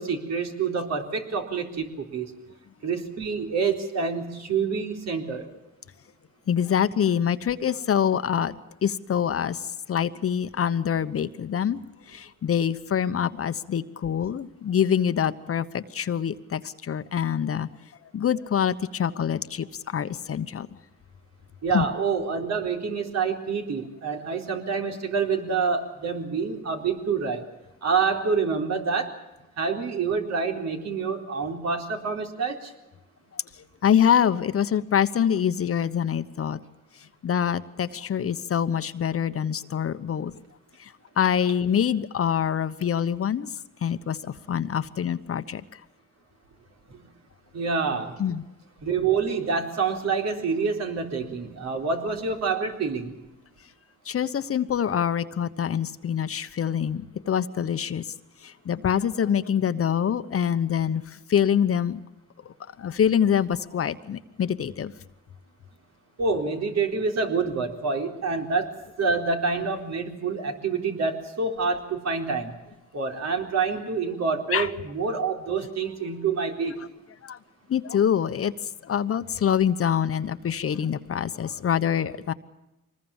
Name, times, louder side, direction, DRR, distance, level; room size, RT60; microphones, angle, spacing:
voice 1, 0.0-2.3 2.8-5.5 21.6-27.4 27.8-29.2 29.6-32.7 46.9-47.0 47.5-48.2 48.8-53.2 66.2-68.7 69.0-72.5 72.9-76.9, right 5 dB, 60° right, 3 dB, 4.2 m, -27 dB
voice 2, 6.5-8.6 8.8-11.8 12.1-17.7 18.1-20.7 21.7-21.9 33.3-36.6 37.2-40.4 40.8-43.5 43.8-45.8 48.2-48.4 54.0-58.1 58.4-62.0 62.4-64.9 74.5-74.7 77.2-77.4 77.7-78.5 78.8-82.3, left 8 dB, 50° left, 12 dB, 1.1 m, -25 dB
25.0 x 20.5 x 7.3 m, 0.95 s
cardioid pair, 90°, 30 cm